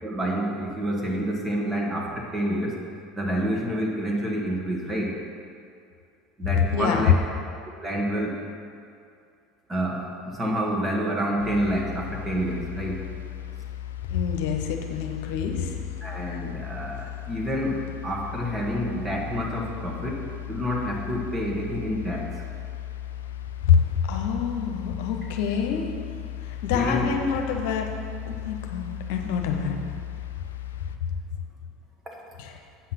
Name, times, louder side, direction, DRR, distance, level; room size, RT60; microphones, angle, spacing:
voice 1, 0.0-2.8 3.1-5.2 6.4-7.2 7.8-8.4 9.7-13.1 16.0-22.4 26.7-27.3 32.1-32.2, equal, 20° right, -2 dB, 2.0 m, -28 dB
voice 2, 6.7-7.1 14.1-15.8 16.3-16.4 23.7-23.8 24.1-25.9 26.4-27.9 28.2-29.8 32.4-32.5, left 7 dB, 70° left, 3 dB, 0.9 m, -26 dB
sound 1, 11.4-31.0, left 12 dB, 85° left, 0.4 m, -37 dB
8.6 x 5.7 x 5.9 m, 2.3 s
hypercardioid pair, 80°, 0 cm